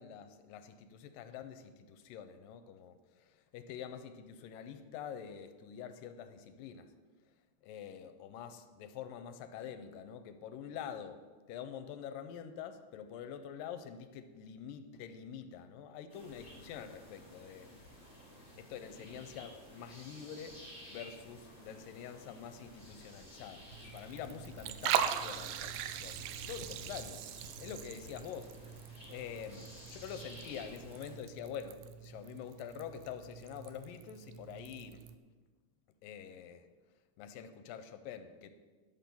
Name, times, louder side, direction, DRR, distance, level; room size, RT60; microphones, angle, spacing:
voice 1, 0.0-6.9 7.6-11.2 11.5-17.7 18.6-20.6 20.9-26.2 26.5-28.8 29.1-35.1 36.0-36.7 37.2-38.5, left 8 dB, 85° left, 9 dB, 2.2 m, -46 dB
sound 1, 16.1-31.2, left 1 dB, 25° right, 3.9 m, -53 dB
Liquid, 23.7-35.2, right 10 dB, 80° right, 2.2 m, -41 dB
11.0 x 5.9 x 6.9 m, 1.4 s
omnidirectional pair, 4.1 m